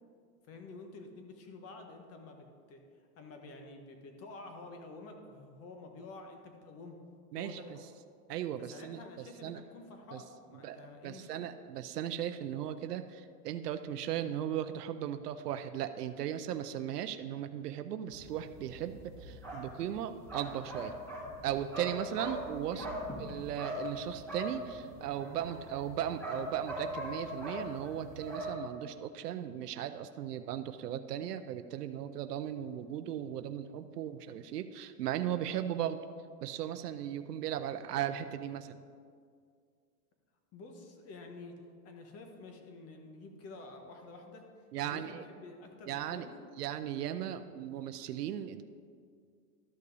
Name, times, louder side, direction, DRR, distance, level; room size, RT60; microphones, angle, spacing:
voice 1, 0.5-2.8 3.2-7.0 7.4-7.8 8.6-11.5 22.7-23.0 40.5-41.5 41.8-44.5 44.8-46.4 47.3-47.4, left 3 dB, 30° left, 3 dB, 1.3 m, -49 dB
voice 2, 7.3-7.8 8.3-9.0 9.4-9.6 10.1-10.2 10.6-20.9 21.4-22.9 23.2-36.0 36.4-38.8 44.7-45.2 45.9-46.3 46.6-48.6, right 10 dB, 90° right, 9 dB, 0.6 m, -37 dB
sound 1, 18.1-28.5, equal, 5° left, 2.2 m, -41 dB
13.0 x 5.4 x 4.0 m, 2.1 s
hypercardioid pair, 130°, 46 cm